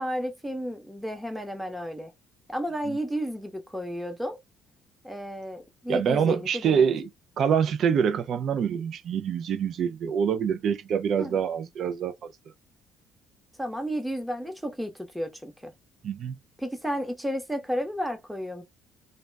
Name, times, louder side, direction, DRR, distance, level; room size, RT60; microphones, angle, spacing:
voice 1, 0.0-2.1 2.5-4.4 5.0-6.9 11.2-11.4 13.6-15.7 16.6-18.6, equal, ahead, 0.8 m, -32 dB
voice 2, 5.9-7.0 7.4-12.3 16.0-16.4, right 7 dB, 60° right, 0.4 m, -25 dB
2.3 x 2.1 x 3.3 m
cardioid pair, 95°, 0 cm